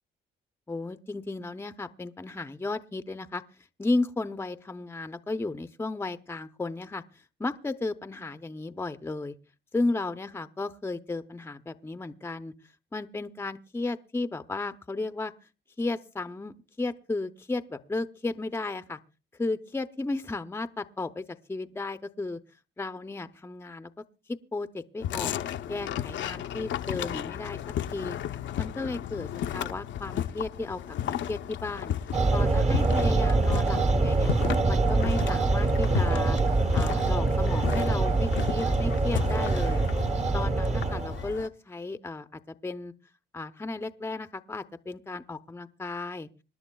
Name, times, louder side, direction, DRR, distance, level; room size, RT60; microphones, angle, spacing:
voice 1, 0.7-3.4 3.8-7.0 7.4-9.3 9.7-12.5 12.9-15.3 15.8-19.0 19.3-22.4 22.8-23.9 24.3-25.3 25.7-27.6 27.9-28.2 28.6-31.9 32.3-34.3 34.6-36.4 36.7-39.8 40.3-42.9 43.3-46.3, left 3 dB, 10° left, 10 dB, 0.6 m, -34 dB
sound 1, 25.0-41.5, left 10 dB, 70° left, 0.6 m, -34 dB
sound 2, 32.1-41.3, right 3 dB, 35° right, 1.0 m, -25 dB
26.0 x 11.0 x 2.3 m, 0.32 s
cardioid pair, 90°, 20 cm